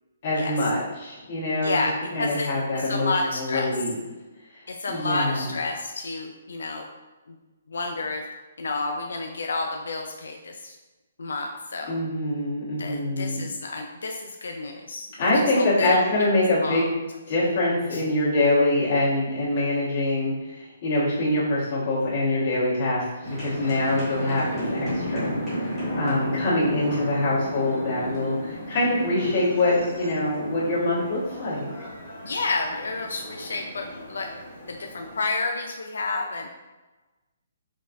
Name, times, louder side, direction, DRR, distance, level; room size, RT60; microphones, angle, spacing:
voice 1, 0.2-1.7 2.1-4.0 4.9-5.5 11.9-13.4 15.2-17.0 17.3-25.3 25.9-31.7, left 1 dB, 30° left, -9 dB, 1.4 m, -24 dB
voice 2, 1.6-3.7 4.7-6.9 7.3-7.4 7.7-8.2 8.6-10.8 11.2-12.0 12.8-16.0 16.6-16.8 17.9-18.0 32.2-34.3 34.7-36.5, left 3 dB, 85° left, 3 dB, 0.3 m, -30 dB
sound 1, 23.2-35.2, equal, 5° right, 1.3 m, -34 dB
5.2 x 2.3 x 2.5 m, 1.2 s
hypercardioid pair, 175°, 0 cm